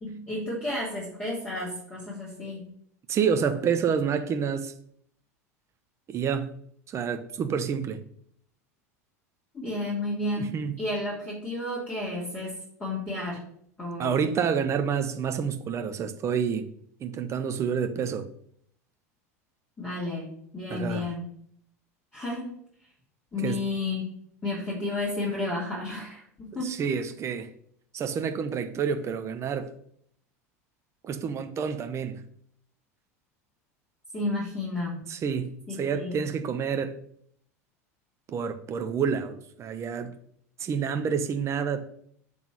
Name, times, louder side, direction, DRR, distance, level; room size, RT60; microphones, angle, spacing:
voice 1, 0.0-2.7 9.5-13.4 13.8-14.3 19.8-21.3 22.1-22.6 23.3-24.1 24.4-26.8 34.1-35.0 35.7-36.2, left 2 dB, 20° left, 2.9 m, -32 dB
voice 2, 3.1-4.7 6.1-6.5 6.9-8.0 10.4-10.7 14.0-16.7 17.0-18.3 20.7-21.1 23.4-23.6 26.5-27.5 27.9-29.7 31.0-32.2 35.1-37.0 38.3-40.1 40.6-41.8, right 7 dB, 35° right, 0.9 m, -28 dB
8.1 x 3.6 x 6.3 m
hypercardioid pair, 85°, 8 cm